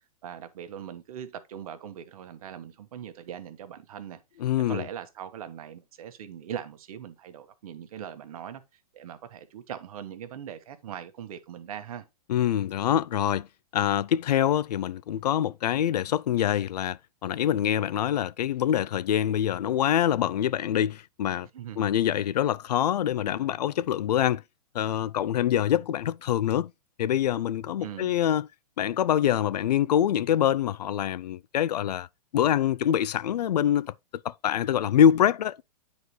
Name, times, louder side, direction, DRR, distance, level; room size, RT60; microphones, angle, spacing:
voice 1, 0.2-4.2 4.7-8.6 8.9-12.1 21.5-21.9 27.8-28.2, right 9 dB, 65° right, 1.2 m, -40 dB
voice 2, 4.4-4.8 12.3-13.5 13.7-21.5 21.8-24.4 24.7-26.7 27.0-28.5 28.8-32.1 32.3-33.9 34.2-35.6, left 10 dB, 85° left, 0.4 m, -25 dB
9.5 x 4.2 x 3.1 m
hypercardioid pair, 140°, 20 cm